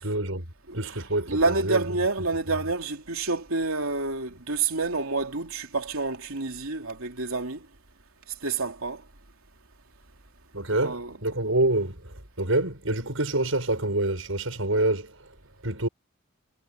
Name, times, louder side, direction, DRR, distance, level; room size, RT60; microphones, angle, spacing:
voice 1, 0.0-0.4 0.7-2.0 2.5-2.6 10.5-15.2 15.6-15.9, right 2 dB, 70° right, 6.8 m, -27 dB
voice 2, 0.7-7.6 8.4-9.0 10.8-11.5, right 3 dB, 90° right, 2.9 m, -28 dB
head